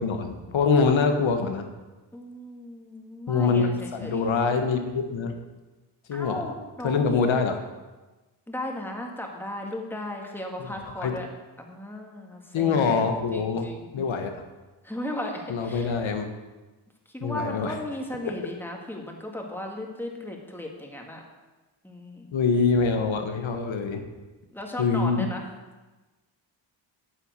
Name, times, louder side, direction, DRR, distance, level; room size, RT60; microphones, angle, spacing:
voice 1, 0.0-1.6 3.3-3.7 4.0-5.3 6.1-6.5 6.8-7.6 10.6-10.7 11.0-11.2 12.5-13.7 13.9-14.3 15.5-16.3 17.2-17.8 18.2-18.3 22.3-24.0 24.8-25.3, left 5 dB, 70° left, 6 dB, 1.5 m, -24 dB
voice 2, 2.1-4.3 6.1-7.2 8.5-11.3 11.6-13.0 13.3-13.9 14.8-15.9 17.1-21.2 21.8-22.3 24.5-25.5, left 1 dB, 5° left, 0 dB, 2.0 m, -36 dB
9.5 x 5.8 x 8.2 m, 1.2 s
cardioid pair, 80°, 48 cm